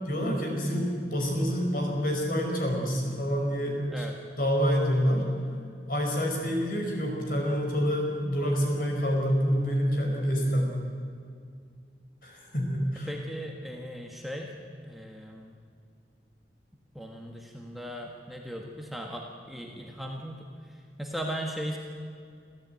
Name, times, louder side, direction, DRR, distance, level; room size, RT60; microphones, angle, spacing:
voice 1, 0.1-5.2 5.9-10.7 12.2-13.1, equal, 50° left, 1 dB, 5.4 m, -27 dB
voice 2, 13.1-14.6 14.8-15.5 16.9-21.8, equal, ahead, 0 dB, 1.5 m, -38 dB
28.0 x 14.0 x 9.2 m, 2.3 s
head